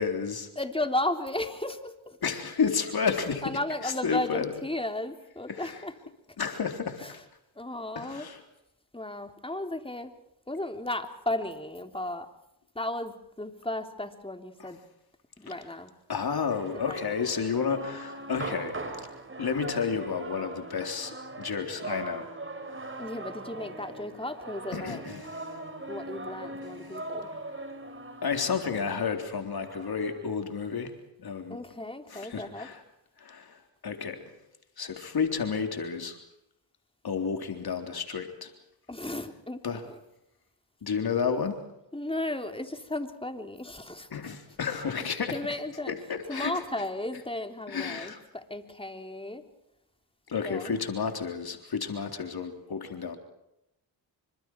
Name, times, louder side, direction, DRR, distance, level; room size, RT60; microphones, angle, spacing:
voice 1, 0.0-0.5 2.2-4.5 5.5-5.8 6.4-7.2 8.0-8.4 14.6-14.7 16.1-18.7 19.4-22.3 24.7-25.5 28.2-30.9 31.2-31.6 32.1-32.8 33.2-33.6 33.8-34.2 34.8-36.2 37.0-38.5 39.6-39.8 40.8-41.6 44.1-45.4 45.9-46.5 47.7-48.2 50.3-53.2, left 6 dB, 55° left, 5 dB, 3.8 m, -31 dB
voice 2, 0.6-2.2 3.4-5.9 7.0-7.2 7.6-8.3 8.9-10.1 10.5-12.3 12.8-14.8 15.4-15.9 16.9-17.2 23.0-25.0 25.9-27.3 31.5-32.7 38.9-39.6 39.9-40.0 41.9-44.1 45.3-45.9 46.3-49.4 50.4-50.7, left 1 dB, 10° left, 6 dB, 3.5 m, -34 dB
sound 1, 16.5-30.4, right 2 dB, 25° right, 4.5 m, -40 dB
29.0 x 25.5 x 4.7 m, 0.84 s
cardioid pair, 65°, 44 cm